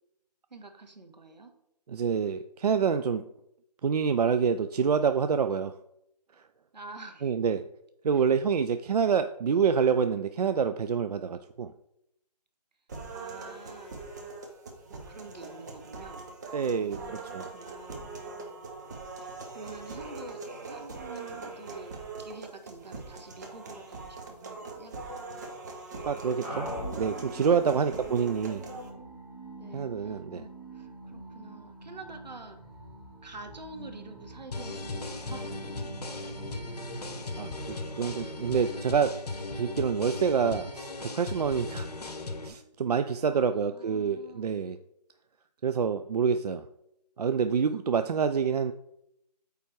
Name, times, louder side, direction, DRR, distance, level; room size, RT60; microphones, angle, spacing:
voice 1, 0.5-1.5 6.7-7.3 8.1-8.2 13.1-13.9 14.9-16.3 16.7-17.2 17.5-18.1 19.2-25.0 29.6-32.6 33.2-36.2 38.2-38.5 43.0-44.6, right 3 dB, 90° right, 6 dB, 1.4 m, -48 dB
voice 2, 1.9-3.3 3.8-5.7 7.2-7.6 8.0-11.7 16.5-17.4 26.1-26.7 26.9-28.6 29.7-30.4 37.4-39.2 39.5-42.1 42.4-44.8 45.6-46.6 47.2-48.7, right 6 dB, 65° right, 10 dB, 0.4 m, -27 dB
sound 1, 12.9-28.9, right 3 dB, 25° right, 0.9 m, -42 dB
sound 2, 26.4-39.3, right 1 dB, 5° right, 1.4 m, -44 dB
sound 3, 34.5-42.5, left 2 dB, 65° left, 1.1 m, -37 dB
8.6 x 3.5 x 4.5 m, 0.80 s
figure-of-eight pair, 160°, 21 cm